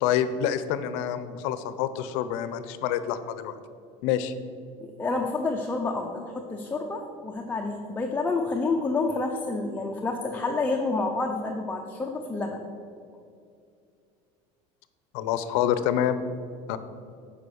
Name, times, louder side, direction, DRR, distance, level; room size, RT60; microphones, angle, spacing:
voice 1, 0.0-3.6 4.0-4.3 15.1-16.2 16.7-16.8, left 10 dB, 75° left, 12 dB, 0.6 m, -27 dB
voice 2, 4.8-12.7, left 3 dB, 10° left, 1 dB, 0.6 m, -29 dB
7.7 x 5.1 x 6.4 m, 2.4 s
supercardioid pair, 120°, 15 cm